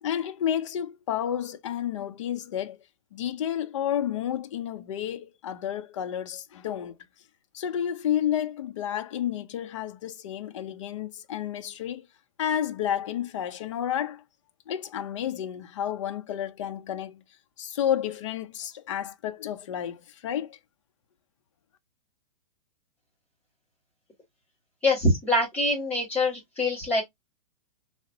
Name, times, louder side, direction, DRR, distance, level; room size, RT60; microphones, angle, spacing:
voice 1, 0.0-2.8 3.1-6.9 7.5-12.1 12.4-14.2 14.7-17.2 17.6-20.6, left 10 dB, 50° left, 0.7 m, -31 dB
voice 2, 24.8-27.0, left 1 dB, 10° left, 2.2 m, -24 dB
4.0 x 3.2 x 2.7 m
supercardioid pair, 175°, 19 cm